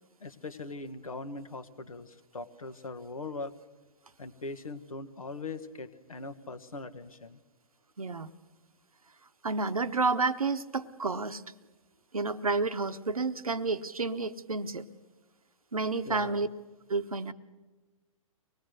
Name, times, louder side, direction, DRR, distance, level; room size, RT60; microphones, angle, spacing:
voice 1, 0.2-3.5 4.2-7.4 16.0-16.4, left 3 dB, 80° left, 9 dB, 1.3 m, -41 dB
voice 2, 8.0-8.3 9.4-11.4 12.1-14.8 15.7-16.5 16.9-17.3, right 3 dB, 85° right, 11 dB, 1.0 m, -30 dB
24.5 x 19.0 x 6.4 m, 1.2 s
figure-of-eight pair, 120°, 18 cm